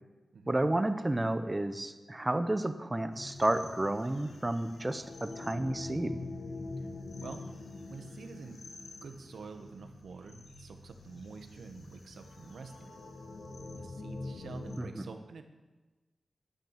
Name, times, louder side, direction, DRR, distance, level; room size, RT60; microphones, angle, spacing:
voice 1, 0.5-6.2 14.8-15.1, right 1 dB, 20° right, 10 dB, 0.8 m, -31 dB
sound 1, 3.1-14.8, left 2 dB, 80° left, 1.7 m, -45 dB
voice 2, 7.2-7.5 7.9-8.6 9.0-12.9 13.8-15.4, right 4 dB, 85° right, 6 dB, 1.2 m, -47 dB
10.5 x 9.0 x 6.6 m, 1.2 s
wide cardioid pair, 100°, 0 cm